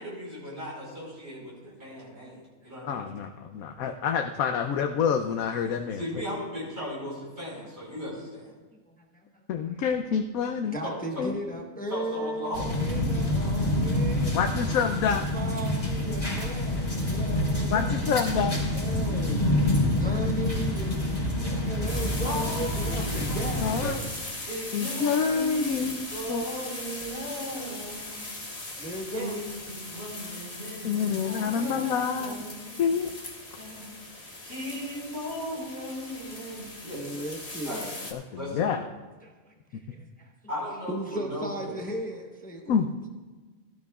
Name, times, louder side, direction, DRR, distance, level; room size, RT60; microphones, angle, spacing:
voice 1, 0.0-3.1 5.9-8.5 10.8-11.0 11.9-12.9 19.0-19.2 22.2-23.5 24.5-28.3 29.1-32.8 33.6-33.9 34.2-37.1 37.6-37.9 38.4-38.7 40.5-41.8, equal, 50° right, -8 dB, 5.2 m, -37 dB
voice 2, 2.8-6.0 9.5-10.8 11.2-11.4 14.3-15.2 17.7-18.6 23.6-24.0 24.7-26.4 30.8-32.4 32.8-33.1 38.1-38.2 38.5-38.8 42.7-42.9, left 6 dB, 90° left, 5 dB, 1.1 m, -27 dB
voice 3, 3.4-3.8 9.1-9.4 10.7-14.4 15.1-18.0 18.7-19.6 19.9-21.0 21.4-24.5 28.8-29.4 31.6-31.9 36.9-38.1 39.2-40.3 40.9-42.9, right 1 dB, 5° left, 1 dB, 1.0 m, -37 dB
sound 1, 12.5-23.9, left 1 dB, 45° left, 4.5 m, -27 dB
sound 2, 21.9-38.1, left 2 dB, 30° left, 1.6 m, -39 dB
17.5 x 13.0 x 2.4 m, 1.3 s
omnidirectional pair, 1.4 m